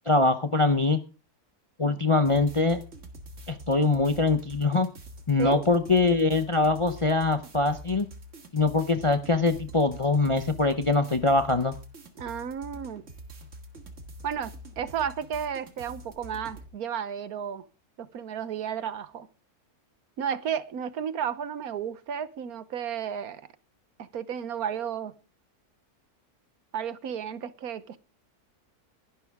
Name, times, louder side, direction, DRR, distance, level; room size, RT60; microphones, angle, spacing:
voice 1, 0.1-1.0 1.8-2.8 3.5-4.9 5.3-8.1 8.5-11.8, left 3 dB, 30° left, 0.6 m, -23 dB
sound 1, 2.2-16.7, right 1 dB, 50° right, 2.2 m, -45 dB
voice 2, 12.2-13.0 14.2-17.6 18.0-19.3 20.2-23.4 24.0-25.1 26.7-28.0, right 8 dB, 70° right, 1.4 m, -33 dB
21.0 x 11.5 x 3.6 m
omnidirectional pair, 1.6 m